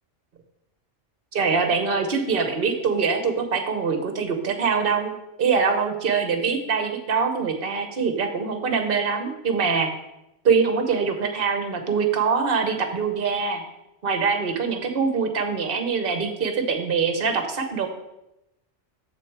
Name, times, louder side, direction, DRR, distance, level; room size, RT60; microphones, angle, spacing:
voice 1, 1.3-9.9 10.4-13.6 14.0-17.9, right 5 dB, 50° right, 7 dB, 1.1 m, -24 dB
7.2 x 6.7 x 4.6 m, 0.88 s
omnidirectional pair, 1.2 m